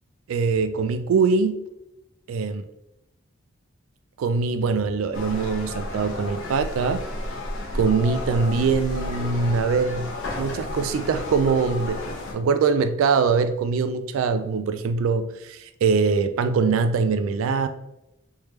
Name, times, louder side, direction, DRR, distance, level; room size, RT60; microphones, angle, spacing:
voice 1, 0.3-1.6 2.3-2.6 4.2-7.1 7.7-17.7, right 5 dB, 90° right, 10 dB, 0.3 m, -23 dB
sound 1, 5.1-12.3, left 1 dB, 80° left, 0.8 m, -32 dB
3.3 x 3.2 x 3.1 m, 0.90 s
head